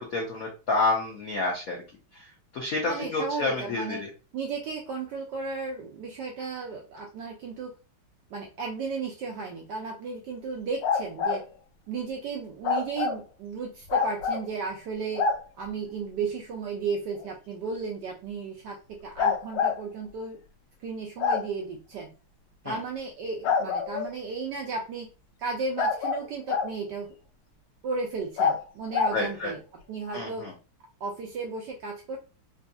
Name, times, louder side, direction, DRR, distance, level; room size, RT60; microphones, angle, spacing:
voice 1, 0.0-1.8 2.1-4.1 22.6-22.8 29.1-29.5 30.1-30.5, left 2 dB, 75° left, -1 dB, 0.8 m, -29 dB
voice 2, 2.9-4.0 4.3-7.7 8.3-11.4 11.9-15.3 15.6-20.4 20.8-22.1 22.6-25.1 25.4-27.2 27.8-29.6 29.9-30.5 31.0-32.2, right 4 dB, 75° right, 0 dB, 1.0 m, -34 dB
sound 1, 10.8-11.4 12.6-13.2 13.9-14.4 15.2-15.4 17.2-17.3 19.2-19.8 21.2-21.4 23.4-24.1 25.8-26.7 28.4-28.6 28.9-29.2, left 5 dB, 90° left, 1.6 m, -25 dB
4.0 x 2.7 x 2.2 m, 0.32 s
omnidirectional pair, 2.4 m